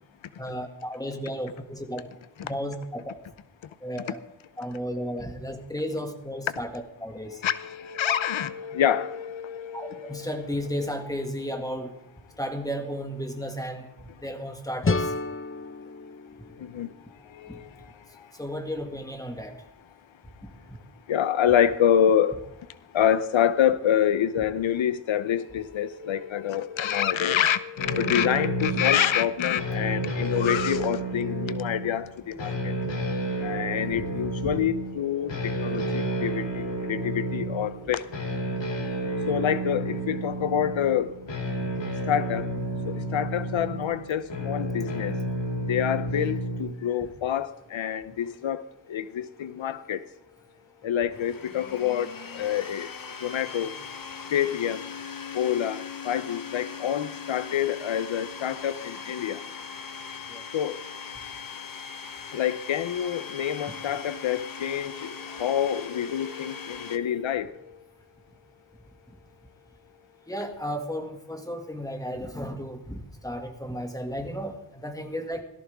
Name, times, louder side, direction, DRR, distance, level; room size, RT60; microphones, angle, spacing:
voice 1, 0.4-2.1 2.4-3.2 3.8-4.2 4.6-7.4 9.7-11.9 12.4-13.9 14.2-15.1 17.5-17.6 18.4-19.6 33.9-34.1 34.4-34.5 60.3-60.4 70.3-75.4, equal, 10° left, 4 dB, 2.1 m, -33 dB
voice 2, 7.4-10.3 16.6-16.9 17.4-17.6 21.1-22.3 22.9-32.7 33.4-38.0 39.3-41.1 42.1-42.5 42.9-45.1 45.7-48.6 48.9-50.0 50.8-52.9 53.2-53.7 54.3-54.8 55.3-59.4 60.5-60.8 62.3-67.5, left 9 dB, 85° left, 14 dB, 0.8 m, -27 dB
sound 1, 14.8-17.7, left 3 dB, 30° left, 0.7 m, -31 dB
sound 2, 27.8-46.6, right 1 dB, 70° left, 2.8 m, -31 dB
Domestic sounds home sounds, 51.1-67.0, left 6 dB, 45° left, 1.2 m, -40 dB
17.5 x 14.5 x 3.6 m, 0.88 s
wide cardioid pair, 90°, 45 cm